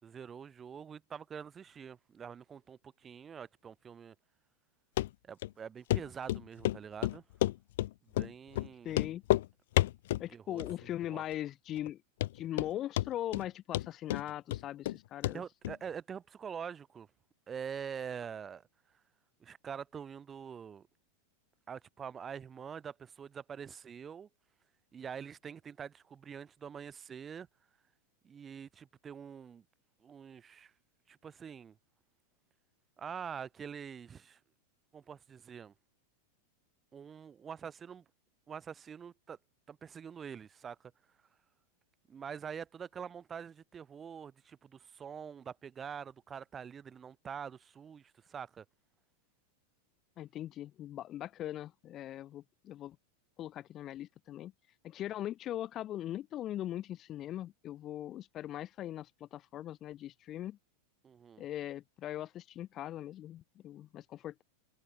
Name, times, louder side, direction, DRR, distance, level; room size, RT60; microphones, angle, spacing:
voice 1, 0.0-4.1 5.2-7.2 8.0-9.0 10.3-10.6 11.1-11.2 15.3-17.1 17.5-18.6 19.4-20.9 21.7-24.3 24.9-27.5 28.2-29.6 30.0-30.7 31.1-31.8 33.0-34.4 34.9-35.7 36.9-38.0 38.5-39.4 39.7-40.9 42.1-48.6 61.0-61.4, right 7 dB, 20° right, 2.7 m, -45 dB
Run, 5.0-5.1 5.4-5.5 5.9-6.0 6.3-7.9 8.2-8.3 8.6-8.7 8.9-9.5 9.8-10.3 10.6-11.0 11.3-11.4 11.9-12.0 12.2-12.7 13.0-13.5 13.7-15.0 15.2-15.4 15.6-15.7, left 15 dB, 55° left, 1.0 m, -30 dB
voice 2, 8.8-9.2 10.2-12.0 12.3-15.4 50.2-53.0 53.4-54.5 54.8-60.6 61.4-64.4, left 12 dB, 30° left, 1.5 m, -40 dB
figure-of-eight pair, 90°, 0 cm